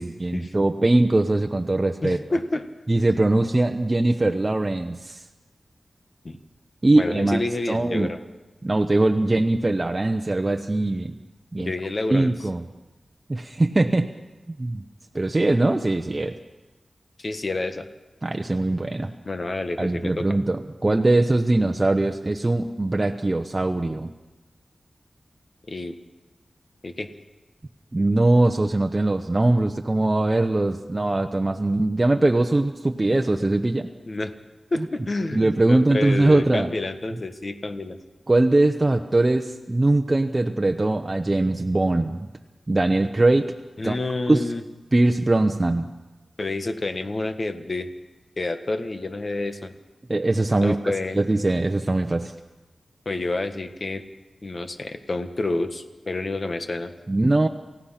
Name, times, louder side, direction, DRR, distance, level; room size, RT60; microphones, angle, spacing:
voice 1, 0.0-2.2 2.9-5.2 6.8-8.1 8.6-11.2 11.5-11.7 12.1-12.6 13.3-14.1 14.6-14.8 15.1-16.4 18.2-19.1 19.8-24.1 27.9-33.9 34.8-34.9 35.3-36.7 38.3-42.2 42.7-43.5 43.8-44.0 44.3-44.4 44.9-45.9 50.1-52.3 57.1-57.5, right 2 dB, 30° right, 4 dB, 0.9 m, -21 dB
voice 2, 2.0-2.7 6.3-6.4 6.9-8.2 11.6-12.3 17.2-17.9 19.2-20.3 25.7-26.0 26.8-27.1 34.1-34.3 34.7-38.0 43.8-44.6 46.4-47.9 48.4-49.7 50.6-51.2 53.1-54.0 54.4-56.9, left 2 dB, 50° left, 8 dB, 1.6 m, -29 dB
28.5 x 16.5 x 5.9 m, 1.1 s
wide cardioid pair, 75°, 0 cm